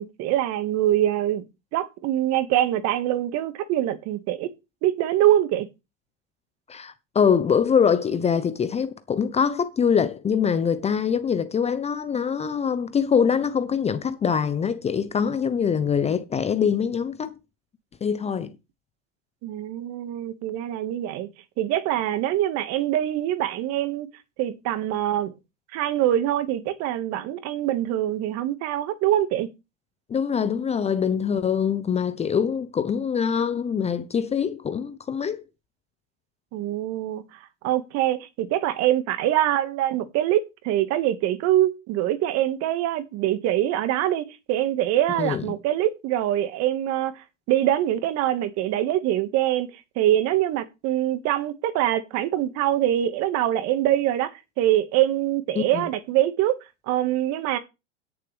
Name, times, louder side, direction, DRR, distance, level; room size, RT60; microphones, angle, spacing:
voice 1, 0.0-1.4 1.7-4.5 4.8-5.7 19.4-21.3 21.6-24.1 24.4-25.4 25.7-29.5 36.5-56.6 56.9-57.6, right 13 dB, 45° right, 1.8 m, -24 dB
voice 2, 6.7-17.4 18.0-18.5 30.1-35.4 45.2-45.5 55.5-55.8, left 7 dB, 15° left, 0.8 m, -24 dB
17.0 x 7.1 x 3.4 m
hypercardioid pair, 105°, 37 cm